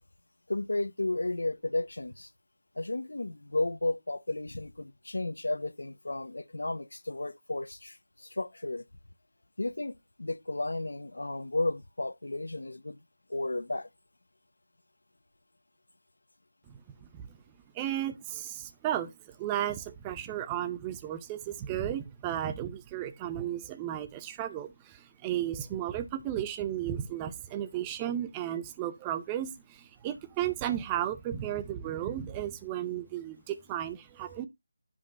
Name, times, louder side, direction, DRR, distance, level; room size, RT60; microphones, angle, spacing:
voice 1, 0.5-2.3 2.8-8.8 9.6-13.0 13.3-13.9, left 2 dB, 85° left, 1.0 m, -33 dB
voice 2, 17.7-34.5, right 11 dB, 10° right, 0.5 m, -34 dB
15.0 x 5.1 x 2.5 m
figure-of-eight pair, 170°, 0 cm